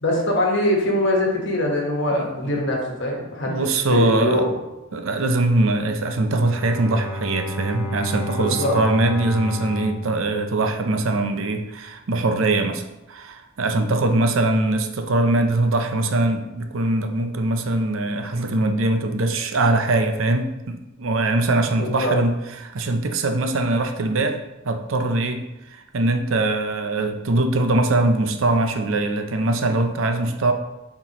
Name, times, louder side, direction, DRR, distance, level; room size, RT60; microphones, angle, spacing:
voice 1, 0.0-4.5 8.4-8.8 21.8-22.1, left 1 dB, 60° left, -1 dB, 1.4 m, -23 dB
voice 2, 2.1-2.6 3.5-4.4 4.9-22.3 22.6-30.5, right 2 dB, 70° right, 6 dB, 0.6 m, -22 dB
Bowed string instrument, 6.3-11.3, equal, 10° right, 0.5 m, -32 dB
7.2 x 4.4 x 3.0 m, 0.97 s
head